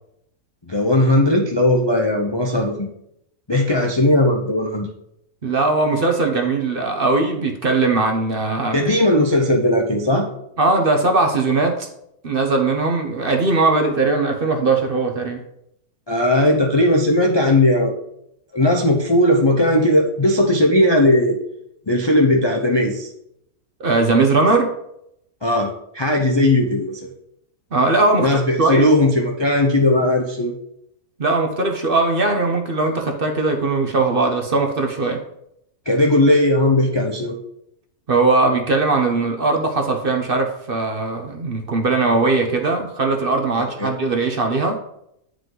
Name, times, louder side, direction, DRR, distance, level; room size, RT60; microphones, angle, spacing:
voice 1, 0.7-2.9 3.5-4.9 8.7-10.3 16.1-17.9 18.5-21.4 21.9-23.1 25.4-27.0 28.2-30.6 35.9-37.4 43.8-43.9, left 1 dB, 30° left, 1 dB, 0.5 m, -17 dB
voice 2, 5.4-8.8 10.6-11.9 12.2-15.4 23.8-24.7 27.7-28.3 28.6-28.9 31.2-35.2 38.1-44.8, right 3 dB, 45° right, 3 dB, 0.9 m, -19 dB
9.6 x 5.0 x 3.8 m, 0.78 s
omnidirectional pair, 1.6 m